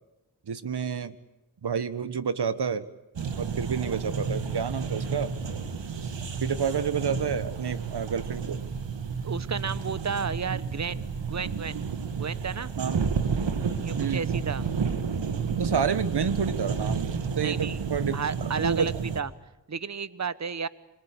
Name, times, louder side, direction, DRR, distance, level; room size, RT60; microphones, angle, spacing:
voice 1, 0.5-1.1 1.6-2.9 3.4-5.4 6.4-8.6 12.8-13.0 13.7-14.3 15.6-18.2 18.6-18.9, right 6 dB, 65° right, 14 dB, 1.6 m, -29 dB
sound 1, 3.2-19.2, right 5 dB, 80° right, 2.2 m, -31 dB
voice 2, 9.2-11.8 12.2-12.7 13.8-14.7 17.4-17.8 18.1-19.3 19.7-20.7, right 5 dB, 40° right, 17 dB, 1.1 m, -32 dB
26.5 x 22.0 x 8.6 m, 0.94 s
cardioid pair, 50°, 43 cm